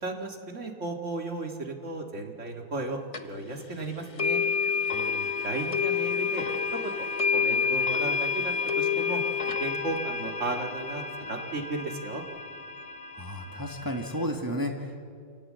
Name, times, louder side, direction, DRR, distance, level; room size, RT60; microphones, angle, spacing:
voice 1, 0.0-4.4 5.4-6.5 6.8-7.1 7.3-9.2 9.6-12.2, right 2 dB, 45° right, 2 dB, 2.3 m, -35 dB
sound 1, 2.8-9.3 9.7-12.2, left 4 dB, 75° left, 2.9 m, -47 dB
sound 2, 3.1-3.2 4.2-14.2, left 6 dB, 35° left, 0.5 m, -29 dB
voice 2, 4.9-5.3 13.1-15.1, equal, 15° right, 2 dB, 1.5 m, -33 dB
27.0 x 18.5 x 7.6 m, 2.3 s
omnidirectional pair, 1.8 m